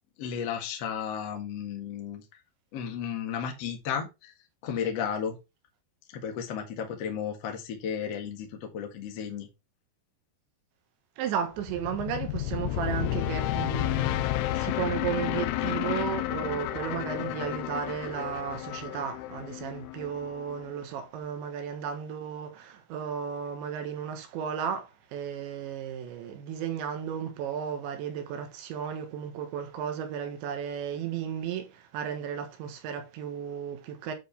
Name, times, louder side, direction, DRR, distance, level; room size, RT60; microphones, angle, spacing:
voice 1, 0.2-2.2 2.7-4.3 4.6-5.4 6.1-9.5, left 7 dB, 60° left, 1.6 m, -33 dB
voice 2, 11.2-34.1, right 8 dB, 75° right, 3.5 m, -34 dB
sound 1, 11.6-20.7, left 14 dB, 85° left, 3.2 m, -31 dB
9.6 x 4.7 x 3.5 m
omnidirectional pair, 5.7 m